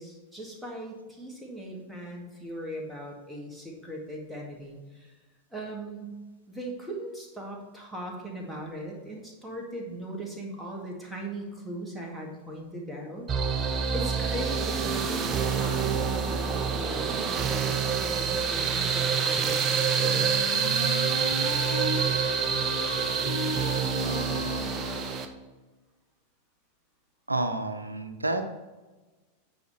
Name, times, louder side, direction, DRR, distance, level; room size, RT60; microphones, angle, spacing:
voice 1, 0.0-5.1 5.5-6.1 6.5-20.6, right 1 dB, ahead, -3 dB, 2.1 m, -39 dB
sound 1, 13.3-25.3, right 6 dB, 25° right, 0.8 m, -27 dB
Wind instrument woodwind instrument, 20.0-25.2, left 4 dB, 65° left, 0.9 m, -35 dB
voice 2, 27.3-28.5, right 2 dB, 80° right, 8 dB, 0.7 m, -29 dB
9.2 x 5.1 x 4.3 m, 1.2 s
figure-of-eight pair, 90°, 0 cm